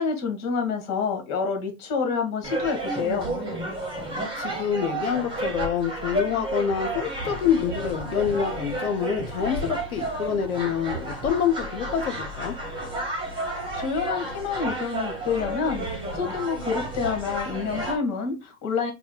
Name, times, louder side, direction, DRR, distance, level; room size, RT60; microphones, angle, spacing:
voice 1, 0.0-3.3 13.7-18.9, left 5 dB, 40° left, 1.6 m, -28 dB
sound 1, 2.4-18.0, right 1 dB, 10° right, 1.5 m, -31 dB
voice 2, 4.4-12.6, left 8 dB, 80° left, 0.7 m, -26 dB
4.3 x 2.2 x 3.8 m
hypercardioid pair, 95°, 42 cm